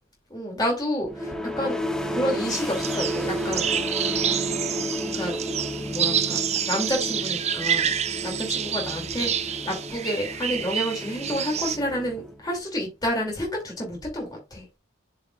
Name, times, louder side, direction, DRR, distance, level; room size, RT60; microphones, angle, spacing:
voice 1, 0.3-1.8 2.1-3.8 5.1-5.4 5.9-7.9 8.2-14.7, equal, 20° left, 2.5 m, -29 dB
sound 1, 1.1-12.6, equal, 5° left, 0.7 m, -32 dB
sound 2, 2.5-11.8, right 8 dB, 30° right, 0.5 m, -28 dB
10.5 x 5.0 x 2.4 m
head